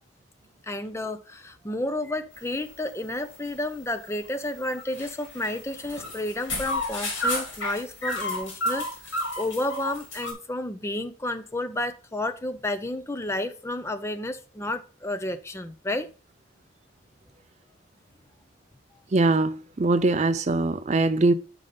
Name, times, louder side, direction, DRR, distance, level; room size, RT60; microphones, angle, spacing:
voice 1, 0.6-16.1, left 1 dB, 15° left, 0.5 m, -31 dB
sound 1, 2.3-10.3, left 1 dB, 65° left, 3.5 m, -33 dB
voice 2, 19.1-21.3, right 2 dB, 35° right, 0.5 m, -22 dB
5.3 x 5.1 x 5.5 m
head